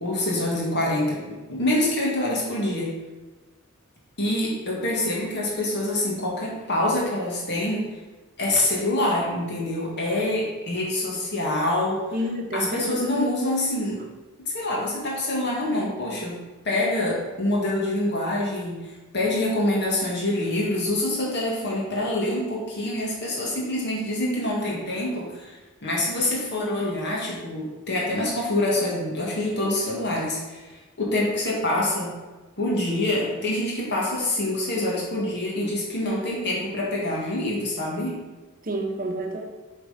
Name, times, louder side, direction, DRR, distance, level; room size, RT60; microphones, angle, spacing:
voice 1, 0.0-2.9 4.2-8.0 8.4-12.0 12.5-14.1 14.4-25.5 25.8-32.1 32.6-38.2, left 1 dB, 55° left, -4 dB, 1.8 m, -26 dB
voice 2, 12.1-13.0 38.6-39.4, right 1 dB, 40° right, 3 dB, 1.0 m, -29 dB
7.6 x 3.9 x 5.1 m, 1.2 s
head